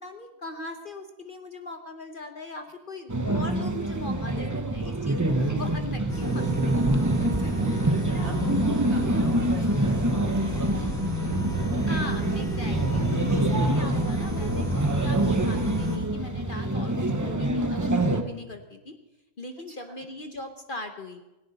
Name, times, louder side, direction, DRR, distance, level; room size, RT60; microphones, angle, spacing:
voice 1, 0.0-6.8 7.2-7.3 8.1-8.3 9.0-9.5 11.8-18.9 19.4-21.2, left 2 dB, 45° left, 6 dB, 1.0 m, -39 dB
sound 1, 3.1-18.2, right 1 dB, 15° right, 0.7 m, -26 dB
sound 2, 6.1-16.0, left 1 dB, ahead, 2.6 m, -32 dB
voice 2, 7.2-8.4 8.7-10.9 11.2-11.5 19.7-20.0, right 3 dB, 45° right, 3 dB, 2.0 m, -42 dB
17.5 x 17.0 x 4.0 m, 1.0 s
omnidirectional pair, 1.4 m